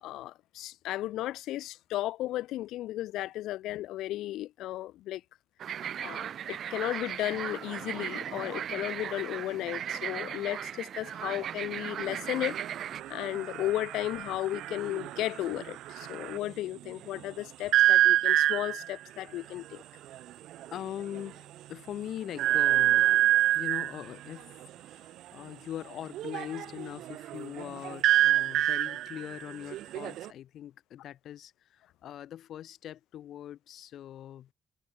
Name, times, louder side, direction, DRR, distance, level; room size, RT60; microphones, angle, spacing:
voice 1, 0.0-5.2 6.0-12.6 13.1-19.8, left 15 dB, 90° left, 0.5 m, -34 dB
sound 1, 5.6-13.0, right 9 dB, 65° right, 1.5 m, -37 dB
sound 2, 12.1-16.5 17.7-18.9 20.1-20.2 20.5-20.7 21.1-21.2 22.4-24.0 26.1-30.3, right 14 dB, 85° right, 0.4 m, -27 dB
voice 2, 20.7-23.3 23.5-24.5 24.8-34.5, left 11 dB, 75° left, 1.3 m, -42 dB
cardioid pair, 90°, 0 cm